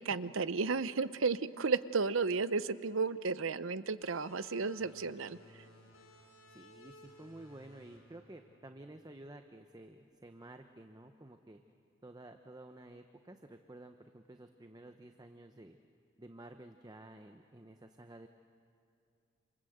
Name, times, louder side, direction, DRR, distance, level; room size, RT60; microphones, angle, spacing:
voice 1, 0.0-5.6, right 4 dB, 70° right, 14 dB, 0.7 m, -33 dB
sound 1, 4.0-9.3, left 2 dB, 85° left, 7.6 m, -58 dB
voice 2, 6.2-11.6 12.0-15.8 16.2-18.3, right 1 dB, 20° right, 6 dB, 0.8 m, -52 dB
28.0 x 27.0 x 7.9 m, 2.5 s
head